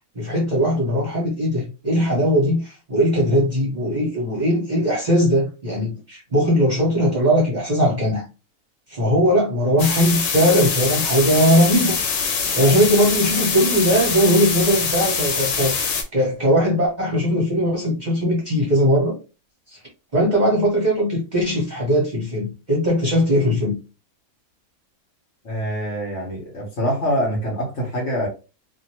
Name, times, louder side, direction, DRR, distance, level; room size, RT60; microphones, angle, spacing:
voice 1, 0.1-8.2 8.9-12.0 12.5-19.2 19.7-19.8 20.1-23.8, equal, 35° right, 0.9 m, -19 dB
sound 1, 9.8-16.0, left 5 dB, 80° left, 1.3 m, -23 dB
voice 2, 25.4-28.3, equal, 50° left, 1.4 m, -25 dB
2.8 x 2.7 x 2.9 m
omnidirectional pair, 1.6 m